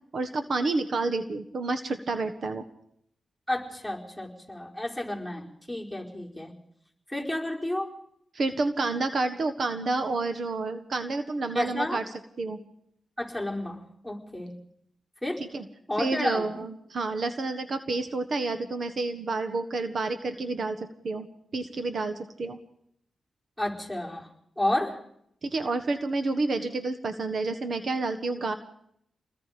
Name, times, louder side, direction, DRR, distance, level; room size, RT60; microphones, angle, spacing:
voice 1, 0.1-2.6 8.3-12.0 12.4-12.6 15.5-15.6 16.0-21.3 21.5-22.6 25.4-28.5, right 3 dB, 65° right, 9 dB, 1.4 m, -29 dB
voice 2, 3.5-6.5 7.1-7.9 11.5-12.0 13.2-14.5 15.2-15.4 15.9-16.6 23.6-24.3 24.6-25.0, left 1 dB, ahead, -2 dB, 4.9 m, -31 dB
28.0 x 20.5 x 5.2 m, 0.72 s
cardioid pair, 70°, 0 cm